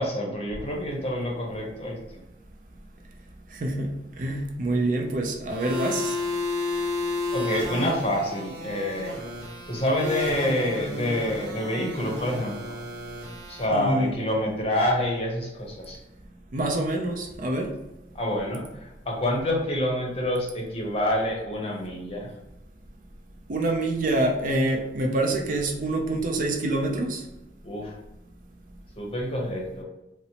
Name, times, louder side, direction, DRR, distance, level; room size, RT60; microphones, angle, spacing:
voice 1, 0.0-2.2 7.3-9.1 9.7-12.7 13.5-16.0 18.1-22.3 27.6-28.0 29.0-29.8, left 1 dB, 35° left, -1 dB, 0.7 m, -27 dB
voice 2, 3.5-6.2 13.7-14.1 16.5-17.7 23.5-27.2, right 2 dB, 45° right, 2 dB, 0.5 m, -26 dB
sound 1, 5.5-13.6, left 2 dB, 65° right, 1.0 m, -32 dB
4.1 x 2.0 x 2.8 m, 0.98 s
head